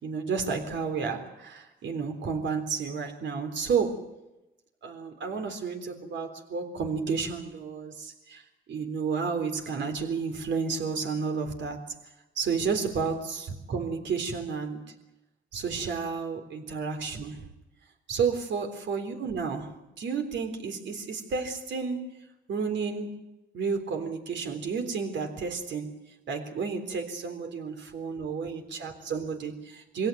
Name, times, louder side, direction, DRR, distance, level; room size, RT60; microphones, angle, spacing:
voice 1, 0.0-4.1 4.8-8.4 8.7-11.8 12.4-14.8 15.5-17.5 18.1-22.1 22.5-23.1 23.5-25.9 26.3-30.1, right 5 dB, 65° right, 5 dB, 3.7 m, -31 dB
24.5 x 17.0 x 9.4 m, 0.97 s
cardioid pair, 90°, 20 cm